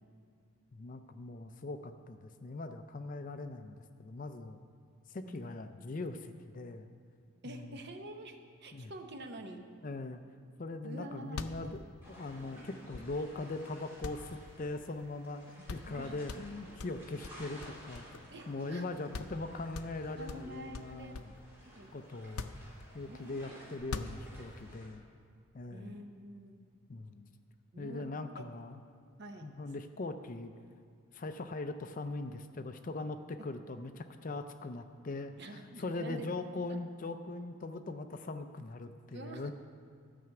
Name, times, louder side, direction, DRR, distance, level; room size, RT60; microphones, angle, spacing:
voice 1, 0.7-4.6 5.1-6.9 7.4-7.8 8.7-8.9 9.8-10.2 10.6-15.4 15.7-21.3 21.9-22.5 22.9-25.1 25.5-26.0 26.9-27.3 27.8-28.8 29.4-30.5 31.1-39.5, left 2 dB, 35° left, 9 dB, 0.4 m, -41 dB
voice 2, 5.2-5.6 7.4-9.7 10.8-11.5 15.9-16.2 18.3-18.9 20.2-21.2 21.7-21.9 23.0-23.4 25.7-26.6 27.7-28.1 28.4-28.5 29.2-29.5 35.4-36.3 36.7-36.8 39.1-39.5, right 1 dB, 50° right, 5 dB, 0.8 m, -47 dB
sound 1, 11.0-11.1 11.2-13.4 14.0-15.1 15.3-15.4 15.7-16.0 16.3-18.4 18.8-18.9 19.1-19.4 19.7-21.4 22.2-23.2 23.8-24.6, left 3 dB, 85° left, 0.5 m, -44 dB
sound 2, 12.0-24.9, equal, 10° right, 2.9 m, -55 dB
12.5 x 5.8 x 7.7 m, 2.2 s
head